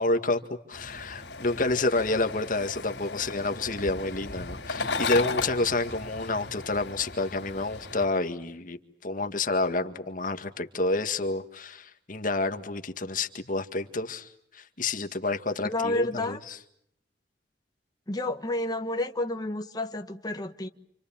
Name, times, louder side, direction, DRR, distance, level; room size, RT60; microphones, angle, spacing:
voice 1, 0.0-16.6, left 2 dB, 50° left, 1.9 m, -29 dB
sound 1, 0.7-8.1, left 3 dB, 85° left, 3.8 m, -36 dB
voice 2, 15.6-16.4 18.1-20.7, left 2 dB, 25° left, 1.4 m, -30 dB
29.0 x 27.0 x 7.3 m
head